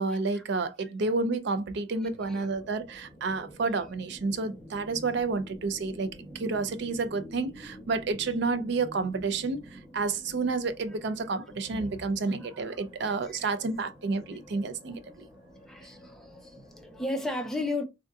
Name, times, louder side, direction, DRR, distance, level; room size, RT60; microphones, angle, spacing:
voice 1, 0.0-15.0, right 3 dB, 65° right, 0.5 m, -30 dB
voice 2, 2.0-2.5 3.3-3.8 11.4-11.5 12.3-12.7 13.2-13.4 14.9-15.0 15.7-17.8, left 2 dB, ahead, 0.5 m, -36 dB
sound 1, 2.0-17.0, equal, 25° right, 1.1 m, -49 dB
3.5 x 2.6 x 2.3 m
head